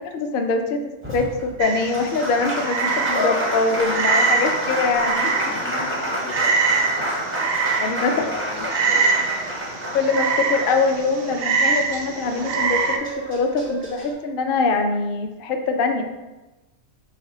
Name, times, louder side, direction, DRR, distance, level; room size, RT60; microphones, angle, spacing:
voice 1, 0.1-5.3 7.7-8.2 9.9-16.0, left 4 dB, 65° left, 5 dB, 0.5 m, -23 dB
Applause, 1.0-11.3 12.7-12.8 13.0-14.1, equal, 20° right, 0.4 m, -28 dB
Frog, 1.6-13.0, right 5 dB, 65° right, 0.6 m, -24 dB
voice 2, 5.5-7.1 8.0-9.3, left 5 dB, 80° left, 3 dB, 1.0 m, -36 dB
sound 1, 6.6-7.8 8.1-9.5 9.8-12.0 12.2-14.2, right 5 dB, 80° right, 1.0 m, -39 dB
3.4 x 3.1 x 4.7 m, 1.1 s
omnidirectional pair, 1.4 m